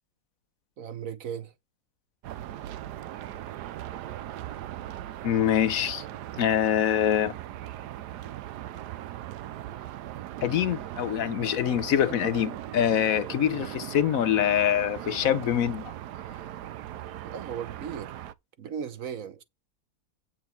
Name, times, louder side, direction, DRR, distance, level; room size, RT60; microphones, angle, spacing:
voice 1, 0.8-1.5 17.2-18.1 18.6-19.4, right 8 dB, 60° right, 1.3 m, -36 dB
sound 1, 2.2-18.3, right 12 dB, 90° right, 1.3 m, -39 dB
voice 2, 5.2-6.0 6.4-7.3 10.4-15.9, left 10 dB, 65° left, 1.1 m, -25 dB
9.1 x 6.2 x 4.5 m
omnidirectional pair, 1.7 m